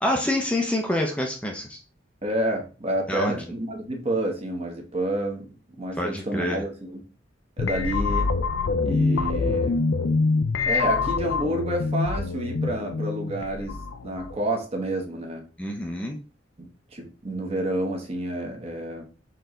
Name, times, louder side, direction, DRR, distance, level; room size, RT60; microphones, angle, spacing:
voice 1, 0.0-1.8 3.1-3.4 6.0-6.6 15.6-16.2, left 1 dB, 5° left, 1 dB, 0.5 m, -26 dB
voice 2, 2.2-7.0 7.6-8.3 8.8-9.8 10.7-13.8 14.0-15.4 16.6-19.0, right 1 dB, 35° right, 2 dB, 1.1 m, -29 dB
sound 1, 7.6-14.5, left 4 dB, 75° left, 0.4 m, -25 dB
4.4 x 3.1 x 3.7 m, 0.35 s
head